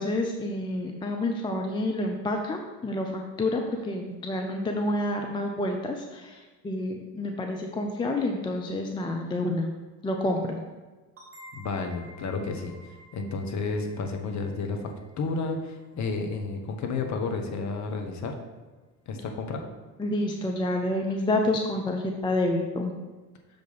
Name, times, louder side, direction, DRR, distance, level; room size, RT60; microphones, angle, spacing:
voice 1, 0.0-9.7 10.0-10.6 20.0-22.9, left 1 dB, 10° left, 3 dB, 0.5 m, -28 dB
sound 1, 11.2-16.6, equal, 25° right, 2.1 m, -52 dB
voice 2, 11.5-14.9 15.2-18.3 19.1-19.6, left 4 dB, 35° left, 4 dB, 1.1 m, -31 dB
6.4 x 5.1 x 4.1 m, 1.3 s
figure-of-eight pair, 65°, 49 cm